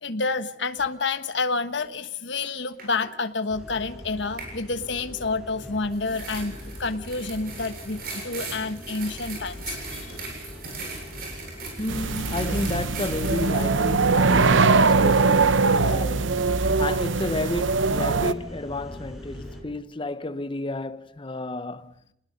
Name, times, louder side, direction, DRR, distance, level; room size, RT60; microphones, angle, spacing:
voice 1, 0.0-10.2, left 3 dB, 65° left, 1.4 m, -29 dB
sound 1, 2.4-2.5 2.8-3.1 4.4-4.6 5.9-13.6, right 3 dB, 50° right, 7.6 m, -38 dB
sound 2, 3.5-19.6, left 1 dB, ahead, 5.7 m, -41 dB
voice 2, 11.8-22.0, left 2 dB, 25° left, 0.8 m, -32 dB
sound 3, 11.9-18.3, right 4 dB, 75° right, 0.9 m, -21 dB
29.0 x 20.0 x 5.2 m
head